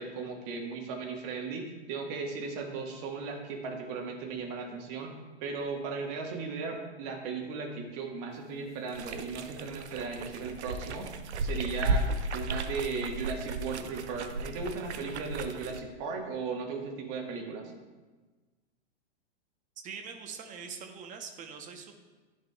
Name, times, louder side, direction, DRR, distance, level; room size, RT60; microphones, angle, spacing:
voice 1, 0.0-5.1 5.4-11.1 11.4-12.0 12.3-17.7, right 4 dB, 40° right, 2 dB, 1.4 m, -36 dB
sound 1, 8.9-15.8, right 2 dB, 80° right, 0.6 m, -34 dB
voice 2, 19.8-21.9, right 6 dB, 25° right, 6 dB, 0.8 m, -43 dB
11.0 x 5.1 x 2.3 m, 1.3 s
hypercardioid pair, 115°, 33 cm